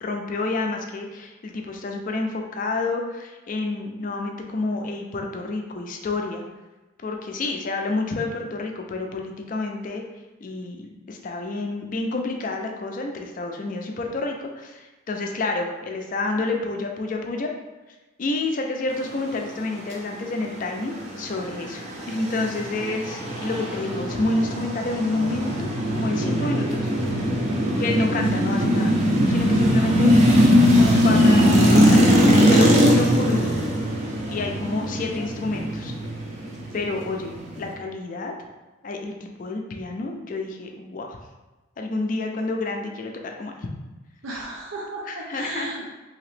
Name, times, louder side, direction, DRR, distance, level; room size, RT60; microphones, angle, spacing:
voice 1, 0.0-6.4 7.0-10.0 10.4-17.5 18.2-25.7 25.9-27.2 27.8-29.0 29.3-30.1 31.0-32.2 32.5-33.6 34.3-35.9 36.7-38.3 38.8-39.1 39.4-41.2 41.8-43.7 45.1-45.9, left 2 dB, 40° left, 2 dB, 0.4 m, -29 dB
sound 1, 21.0-37.7, equal, 35° right, 0.5 m, -20 dB
voice 2, 27.4-27.7 30.8-31.1 44.2-45.9, right 1 dB, 90° right, -3 dB, 0.5 m, -34 dB
2.9 x 2.8 x 3.2 m, 1.1 s
head